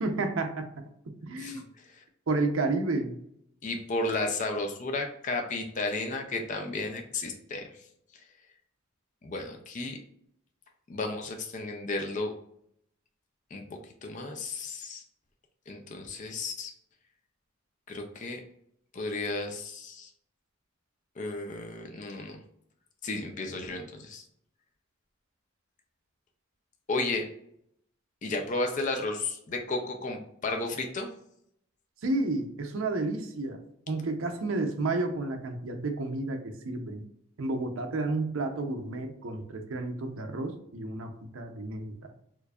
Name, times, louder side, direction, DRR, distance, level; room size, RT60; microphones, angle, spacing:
voice 1, 0.0-1.6 2.3-3.1 32.0-33.6 33.9-37.0 37.4-42.1, right 2 dB, 75° right, 6 dB, 0.6 m, -31 dB
voice 2, 3.6-7.6 9.2-10.0 10.9-12.3 13.5-13.6 14.0-15.0 15.7-16.7 17.9-18.4 18.9-20.1 21.2-22.4 23.0-24.2 26.9-27.3 28.2-31.1, left 2 dB, 35° left, 3 dB, 0.5 m, -33 dB
4.5 x 2.6 x 2.3 m, 0.72 s
head